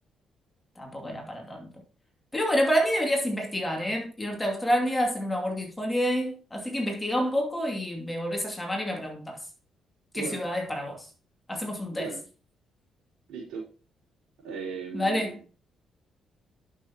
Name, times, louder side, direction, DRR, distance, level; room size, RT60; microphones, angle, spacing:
voice 1, 0.8-1.7 2.3-9.4 10.1-11.1 11.5-12.1 14.9-15.4, equal, 15° left, 2.5 m, -28 dB
voice 2, 13.3-13.6 14.4-15.5, right 5 dB, 85° right, 4.6 m, -37 dB
11.5 x 6.3 x 2.9 m
cardioid pair, 90°, 0 cm